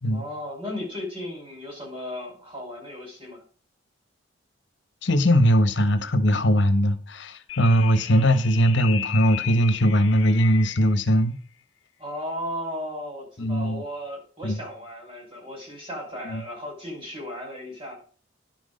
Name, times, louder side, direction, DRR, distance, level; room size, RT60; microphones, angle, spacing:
voice 1, 0.1-3.4 12.0-18.0, left 1 dB, 30° right, 4.9 m, -35 dB
voice 2, 5.0-11.4 13.4-13.8 14.4-14.6 16.2-16.4, equal, 70° left, 1.2 m, -20 dB
sound 1, 7.5-11.0, left 11 dB, 90° left, 0.7 m, -35 dB
10.5 x 6.2 x 5.2 m
head